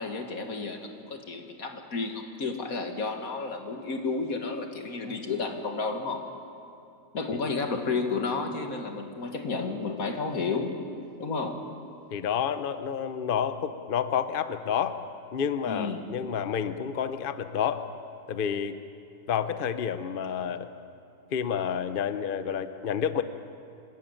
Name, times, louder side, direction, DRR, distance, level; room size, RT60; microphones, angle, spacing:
voice 1, 0.0-6.2 7.1-10.7 11.2-11.6 15.7-16.0, left 4 dB, 50° left, 5 dB, 2.1 m, -31 dB
voice 2, 12.1-15.0 15.3-17.9 18.3-18.8 19.3-20.7 21.3-23.2, left 8 dB, 65° left, 11 dB, 0.5 m, -29 dB
26.0 x 13.5 x 9.1 m, 2.7 s
omnidirectional pair, 2.0 m